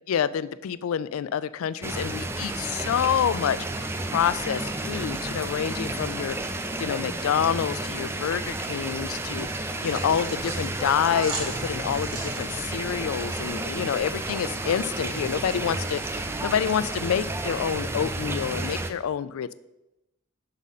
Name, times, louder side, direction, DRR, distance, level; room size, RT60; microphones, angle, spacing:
voice 1, 0.1-3.6 4.1-6.4 6.8-19.5, left 8 dB, 85° left, 16 dB, 0.3 m, -27 dB
sound 1, 1.8-18.9, right 2 dB, 10° right, 0.4 m, -31 dB
sound 2, 9.8-16.0, right 3 dB, 80° right, 1.6 m, -42 dB
6.1 x 4.0 x 5.4 m, 0.92 s
head